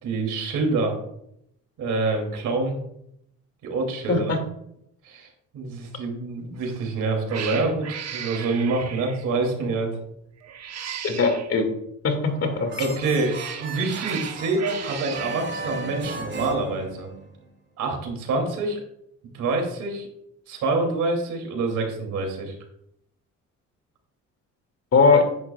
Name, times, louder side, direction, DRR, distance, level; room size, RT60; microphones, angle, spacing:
voice 1, 0.0-1.0 1.8-2.8 3.6-4.2 5.0-10.0 12.8-17.1 17.8-18.8 19.3-20.1 20.5-22.5, right 3 dB, 80° right, 2 dB, 2.8 m, -26 dB
Cat, 6.6-6.9 7.3-9.3 10.4-11.5 12.8-15.4, right 8 dB, 60° right, 1.0 m, -36 dB
voice 2, 11.0-11.7 12.0-12.9 24.9-25.2, left 4 dB, 50° left, 4 dB, 2.2 m, -20 dB
sound 1, 12.1-17.5, right 3 dB, 40° right, 3.5 m, -35 dB
10.5 x 10.0 x 2.3 m, 0.77 s
cardioid pair, 90°, 30 cm